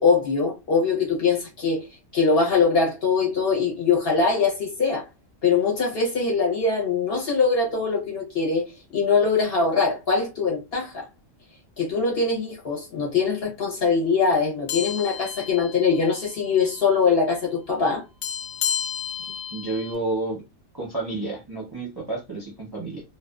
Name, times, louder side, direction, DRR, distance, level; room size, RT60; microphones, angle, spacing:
voice 1, 0.0-1.8 2.1-5.1 5.4-8.7 8.9-11.1 11.8-18.0, left 4 dB, 50° left, 1.0 m, -22 dB
sound 1, 14.7-16.3 16.6-16.9 18.2-19.9, left 8 dB, 85° left, 1.0 m, -31 dB
voice 2, 19.5-20.4 20.7-23.0, right 2 dB, 25° right, 0.6 m, -30 dB
2.5 x 2.3 x 2.3 m
omnidirectional pair, 1.4 m